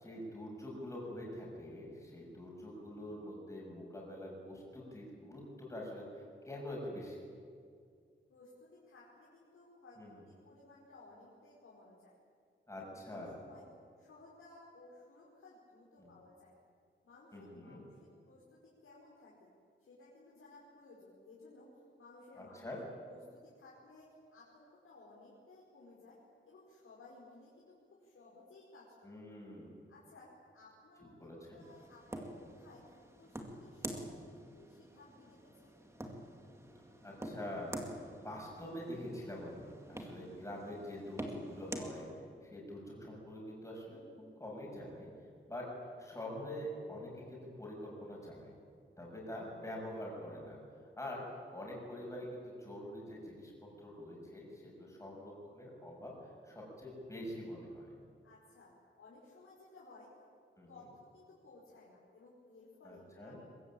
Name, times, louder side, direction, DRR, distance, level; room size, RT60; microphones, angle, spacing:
voice 1, 0.0-7.3 10.0-10.2 12.7-13.3 16.0-16.1 17.3-17.8 22.4-22.8 29.0-29.7 31.2-31.6 37.0-37.8 38.2-42.1 42.4-45.1 45.5-48.5 49.0-50.6 51.0-53.5 53.8-58.0 60.6-60.7 62.8-63.4, left 1 dB, 15° left, -3 dB, 6.8 m, -45 dB
voice 2, 8.3-10.0 10.2-12.2 12.7-13.6 14.0-16.5 17.0-19.5 19.8-21.7 22.0-22.7 23.0-26.2 26.4-29.4 29.9-30.3 30.5-32.9 33.1-34.0 34.3-35.8 51.1-51.2 58.2-58.7 59.0-60.1 60.7-63.4, left 2 dB, 80° left, -5 dB, 5.1 m, -58 dB
sound 1, 31.6-41.9, right 1 dB, 15° right, 2.2 m, -47 dB
22.5 x 22.0 x 8.7 m, 2.2 s
wide cardioid pair, 170°, 21 cm